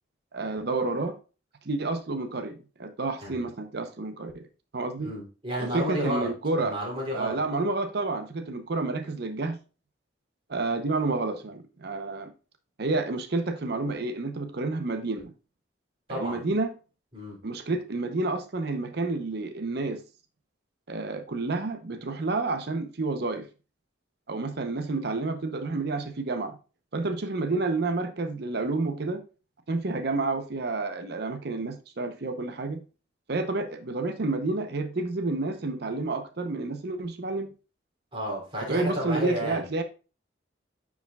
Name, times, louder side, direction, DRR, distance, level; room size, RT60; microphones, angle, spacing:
voice 1, 0.3-1.2 1.6-4.4 4.7-5.1 5.6-6.8 7.1-9.6 10.5-12.3 12.8-15.3 16.1-16.7 17.4-20.0 20.9-23.5 24.3-26.6 26.9-29.2 29.7-32.8 33.3-37.5 38.7-39.8, right 3 dB, 55° right, 0.7 m, -29 dB
voice 2, 5.0-6.3 6.6-7.4 16.1-16.5 17.1-17.4 38.1-39.7, equal, 30° right, 3.2 m, -32 dB
9.4 x 4.8 x 2.3 m
head